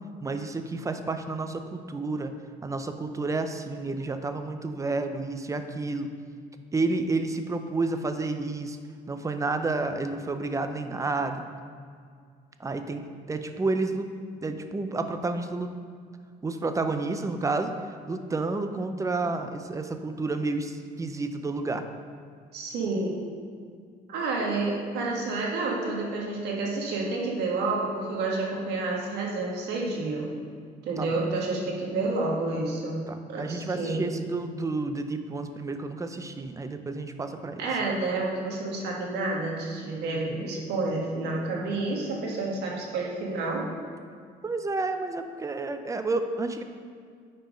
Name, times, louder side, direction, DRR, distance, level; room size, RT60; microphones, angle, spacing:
voice 1, 0.2-2.3 2.6-6.1 6.7-8.8 9.1-11.4 12.6-14.1 14.4-15.7 16.4-17.7 18.1-21.8 31.0-31.2 33.1-37.7 40.1-40.5 44.4-46.6, right 3 dB, 20° right, 8 dB, 0.6 m, -30 dB
voice 2, 22.5-23.2 24.1-30.3 30.8-34.1 37.6-43.7, right 3 dB, 80° right, -1 dB, 1.6 m, -29 dB
9.1 x 4.5 x 5.1 m, 2.1 s
cardioid pair, 110°, 17 cm